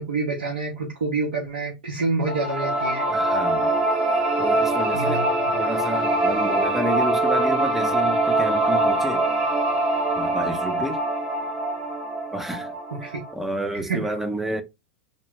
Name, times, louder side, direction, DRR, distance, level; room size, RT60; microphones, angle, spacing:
voice 1, 0.0-3.1 4.9-5.6 12.9-13.2 13.7-14.1, right 3 dB, 75° right, 0.7 m, -28 dB
sound 1, 2.3-13.3, right 2 dB, 20° right, 0.8 m, -23 dB
voice 2, 3.1-3.8 4.4-9.3 10.2-11.0 12.3-12.7 13.0-14.6, right 1 dB, 5° right, 0.5 m, -30 dB
2.2 x 2.0 x 3.1 m
figure-of-eight pair, 90°, 5 cm